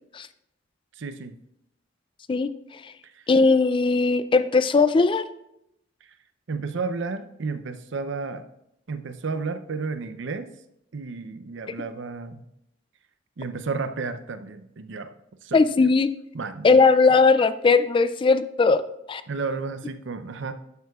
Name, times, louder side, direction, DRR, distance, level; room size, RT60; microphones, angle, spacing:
voice 1, 1.0-1.4 3.0-3.2 6.5-8.5 8.9-10.5 10.9-12.5 13.4-15.1 15.4-15.9 16.3-16.8 19.3-20.5, right 4 dB, 65° right, 11 dB, 0.6 m, -32 dB
voice 2, 3.3-5.2 15.5-16.1 16.6-18.8 19.1-19.2, left 4 dB, 25° left, 13 dB, 0.3 m, -18 dB
11.5 x 8.2 x 2.4 m, 0.81 s
head